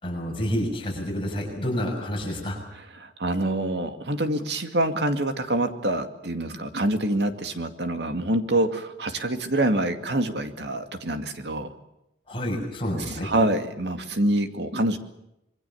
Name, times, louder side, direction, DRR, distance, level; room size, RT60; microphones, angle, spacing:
voice 1, 0.0-2.6 12.3-13.3, equal, 30° left, 0 dB, 6.5 m, -29 dB
voice 2, 3.0-11.7 13.1-15.0, right 1 dB, 70° right, 7 dB, 2.3 m, -26 dB
26.0 x 22.5 x 7.2 m, 0.85 s
head